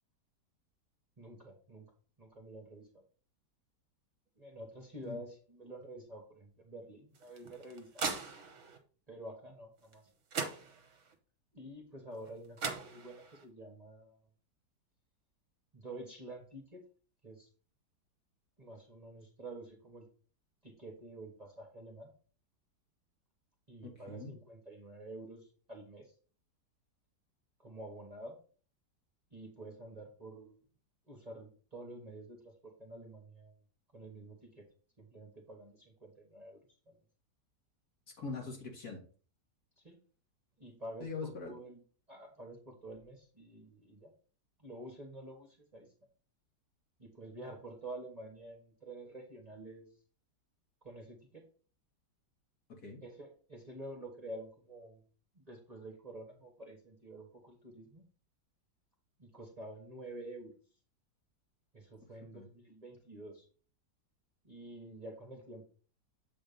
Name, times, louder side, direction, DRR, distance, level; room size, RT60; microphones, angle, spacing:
voice 1, 1.2-1.9 2.2-3.0 4.4-8.2 9.1-10.1 11.5-14.3 15.7-16.8 17.2-17.5 18.6-20.1 20.6-22.1 23.7-26.1 27.6-28.4 29.3-30.6 31.1-33.6 33.9-34.7 35.0-36.6 36.9-37.0 39.8-40.0 40.6-41.8 42.1-44.1 44.6-45.9 47.0-49.9 50.8-51.4 53.0-55.0 55.3-58.0 59.2-60.6 61.7-63.5 64.4-65.6, right 1 dB, 25° right, 1 dB, 1.3 m, -49 dB
sound 1, 7.2-8.8 9.9-10.0 10.3-11.1 12.3-12.4 12.6-13.4, right 5 dB, 50° right, 1.3 m, -39 dB
voice 2, 23.8-24.3 38.2-39.1 41.0-41.5 52.7-53.0 62.3-62.5, left 4 dB, 60° left, 0 dB, 2.4 m, -42 dB
7.7 x 3.6 x 5.2 m, 0.40 s
omnidirectional pair, 1.9 m